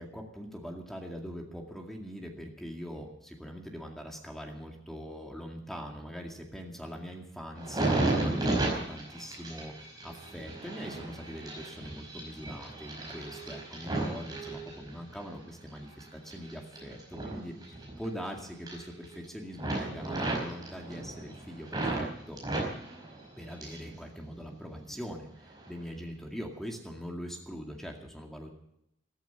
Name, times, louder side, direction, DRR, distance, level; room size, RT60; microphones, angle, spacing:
voice 1, 0.0-17.5 18.0-22.4 23.4-28.5, equal, ahead, 1 dB, 2.1 m, -42 dB
sound 1, 7.6-15.2 15.7-18.3 18.5-19.3 19.6-22.1 22.4-23.9 24.2-25.0 25.5-25.7, right 2 dB, 20° right, 5.0 m, -34 dB
14.5 x 14.0 x 6.9 m, 0.77 s
head